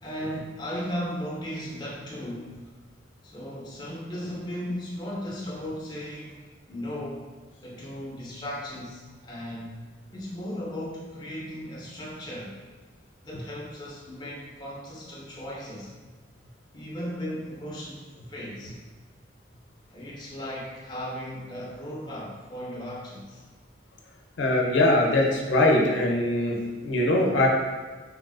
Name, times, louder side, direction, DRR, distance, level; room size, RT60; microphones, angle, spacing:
voice 1, 0.0-2.7 3.2-7.3 7.6-9.8 10.1-12.6 13.2-15.9 16.7-18.8 19.9-23.4, equal, 20° left, -4 dB, 0.5 m, -36 dB
voice 2, 24.4-27.5, left 1 dB, 80° left, -1 dB, 0.5 m, -22 dB
3.4 x 2.3 x 2.3 m, 1.4 s
head